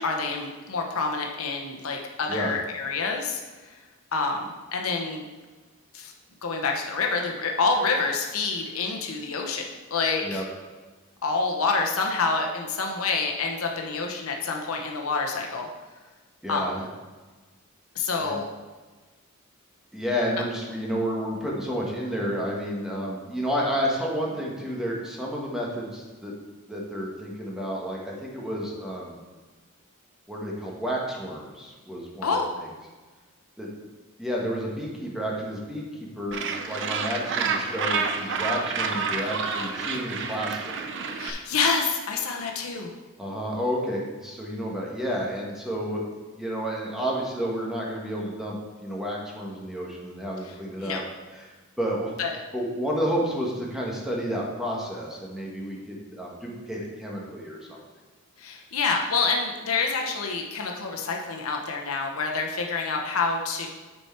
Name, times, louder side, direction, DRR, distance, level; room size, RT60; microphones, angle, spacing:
voice 1, 0.0-3.4 4.1-5.3 5.9-6.1 6.4-10.4 11.2-15.7 16.5-16.7 17.9-18.5 32.2-32.5 41.2-42.9 50.8-51.0 52.2-52.3 58.4-63.7, left 4 dB, 70° left, 1 dB, 0.9 m, -27 dB
voice 2, 16.4-16.8 18.2-18.4 19.9-26.3 26.7-29.2 30.3-32.7 33.6-33.7 34.2-35.8 36.1-40.7 43.2-51.0 51.3-51.5 51.8-52.1 52.5-57.8, equal, ahead, -4 dB, 1.3 m, -31 dB
Gull seagull, 36.3-41.3, right 5 dB, 55° right, 0.7 m, -29 dB
8.8 x 4.6 x 4.4 m, 1.3 s
head